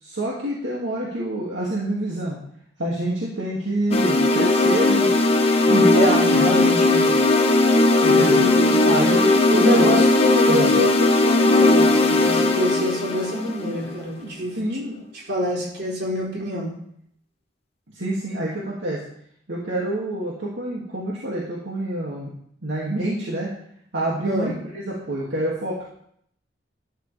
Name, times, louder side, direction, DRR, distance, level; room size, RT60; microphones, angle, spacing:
voice 1, 0.0-2.4 2.8-5.1 5.7-5.9 8.0-8.4 8.8-10.0 10.5-10.7 14.2-15.1 17.9-19.0 19.5-22.3 22.6-23.5 23.9-25.8, right 1 dB, 80° right, -6 dB, 2.6 m, -27 dB
sound 1, 3.9-14.0, left 2 dB, 35° left, 1.2 m, -18 dB
voice 2, 5.9-7.1 8.0-8.9 9.5-14.6 15.2-16.7 24.2-24.5, equal, 65° right, -4 dB, 4.2 m, -25 dB
13.0 x 10.5 x 3.5 m, 0.68 s
head